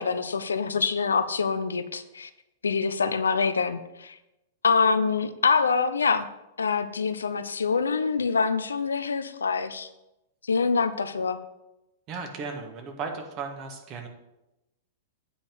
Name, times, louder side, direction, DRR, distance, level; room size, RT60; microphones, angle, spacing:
voice 1, 0.0-2.3 2.6-4.2 4.6-6.2 6.6-9.9 10.5-11.4, left 5 dB, 75° left, 12 dB, 0.5 m, -25 dB
voice 2, 12.1-14.1, right 4 dB, 35° right, 4 dB, 1.6 m, -35 dB
8.6 x 5.2 x 6.2 m, 0.95 s
figure-of-eight pair, 100°, 0 cm